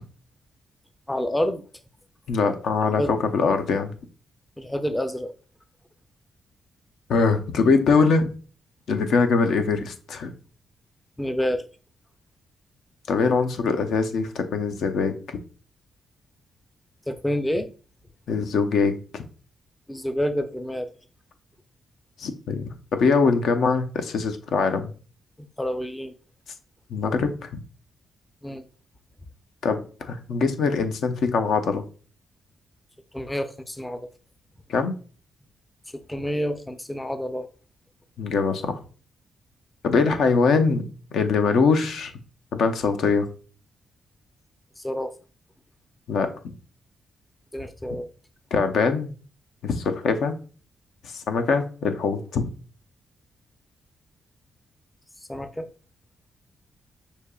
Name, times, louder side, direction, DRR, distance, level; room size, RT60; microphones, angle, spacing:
voice 1, 1.1-1.6 3.0-3.1 4.6-5.3 11.2-11.6 17.1-17.7 19.9-20.9 25.4-26.1 28.4-28.6 33.1-34.1 35.9-37.5 44.8-45.1 47.5-48.1 55.2-55.7, equal, 10° left, 0.4 m, -28 dB
voice 2, 2.3-3.9 7.1-8.3 8.9-10.3 13.1-15.4 18.3-19.2 22.2-24.9 26.9-27.6 29.6-31.8 34.7-34.9 38.2-38.8 39.8-40.8 41.1-42.1 42.5-43.3 46.1-46.3 48.5-49.1 49.6-50.4 51.0-52.4, left 4 dB, 75° left, 0.6 m, -22 dB
6.3 x 2.8 x 2.3 m
cardioid pair, 100°, 0 cm